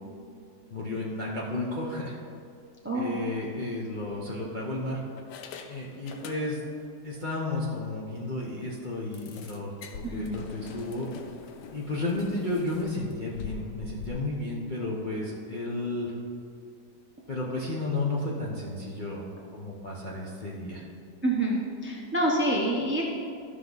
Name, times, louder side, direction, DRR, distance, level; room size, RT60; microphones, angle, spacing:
voice 1, 0.7-2.2 2.9-5.0 5.7-6.6 7.0-11.1 11.7-16.1 17.3-19.2 19.5-20.8, left 2 dB, 35° left, -5 dB, 0.9 m, -32 dB
voice 2, 2.8-3.2 10.0-10.4 21.2-23.0, right 1 dB, 15° right, -2 dB, 0.4 m, -27 dB
sound 1, 3.1-3.3 4.0-4.7 5.2-6.8 7.1-7.3 7.7-7.8 8.1-8.2 9.1-14.1, left 6 dB, 75° left, 1.2 m, -45 dB
14.5 x 5.8 x 4.0 m, 2.4 s
omnidirectional pair, 1.9 m